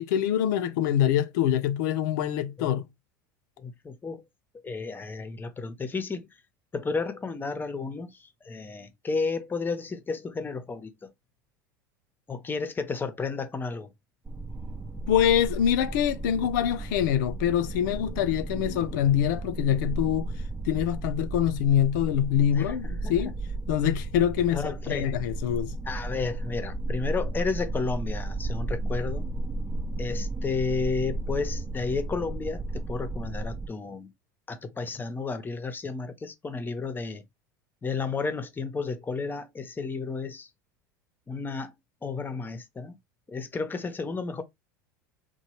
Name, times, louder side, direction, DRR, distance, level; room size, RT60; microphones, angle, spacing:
voice 1, 0.0-2.9 15.1-20.3 20.6-23.3 23.7-25.7, left 10 dB, 70° left, 0.5 m, -25 dB
voice 2, 3.6-4.2 4.6-6.3 6.7-11.1 12.3-13.9 22.5-23.3 24.5-25.1 25.9-29.3 30.0-34.1 34.5-37.2 37.8-40.5 41.3-41.7 42.0-43.0 43.3-44.4, left 4 dB, 20° left, 0.7 m, -32 dB
sound 1, 14.3-33.7, right 2 dB, 15° right, 0.4 m, -34 dB
3.0 x 2.2 x 3.1 m
hypercardioid pair, 90°, 10 cm